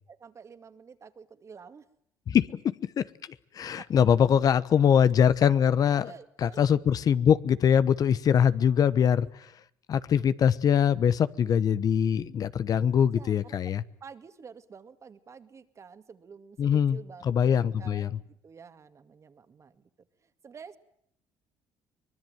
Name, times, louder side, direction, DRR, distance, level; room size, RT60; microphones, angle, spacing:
voice 1, 0.0-1.9 3.7-3.9 6.0-6.6 8.5-8.6 8.9-9.1 13.1-19.8 20.2-20.8, right 6 dB, 40° right, 10 dB, 2.2 m, -49 dB
voice 2, 2.3-3.1 3.5-6.1 6.4-9.3 9.9-13.8 16.6-18.1, left 8 dB, 55° left, 16 dB, 1.1 m, -23 dB
24.5 x 20.5 x 9.3 m, 0.70 s
supercardioid pair, 85°, 8 cm